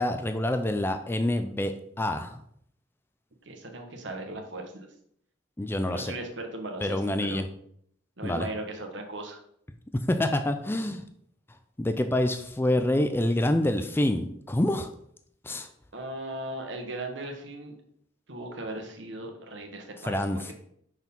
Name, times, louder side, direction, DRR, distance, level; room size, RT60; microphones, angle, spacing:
voice 1, 0.0-2.4 5.6-6.2 6.8-7.5 8.2-8.5 10.1-11.0 11.8-14.9 15.4-15.7 20.0-20.5, left 1 dB, 10° left, 7 dB, 0.4 m, -27 dB
voice 2, 3.4-4.9 5.9-7.4 8.2-9.4 15.9-17.7 18.3-20.2 20.5-20.6, right 1 dB, 70° right, 3 dB, 1.3 m, -37 dB
6.0 x 4.5 x 5.3 m, 0.68 s
head